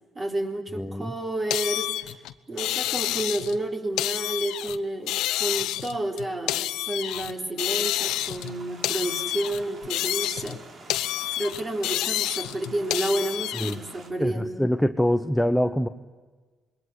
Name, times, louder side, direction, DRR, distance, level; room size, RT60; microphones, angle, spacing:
voice 1, 0.1-2.2 2.5-10.6 11.4-14.6, right 1 dB, 25° right, 4 dB, 3.9 m, -30 dB
voice 2, 0.8-1.1 13.6-13.8 14.2-15.9, equal, 5° left, 8 dB, 0.9 m, -24 dB
sound 1, 1.5-3.6 4.0-4.8 5.1-7.3 7.6-8.5 8.8-10.6 10.9-13.7, left 14 dB, 90° left, 1.1 m, -29 dB
sound 2, 8.0-14.1, right 3 dB, 45° right, 3.5 m, -47 dB
27.0 x 22.0 x 9.7 m, 1.4 s
cardioid pair, 110°, 0 cm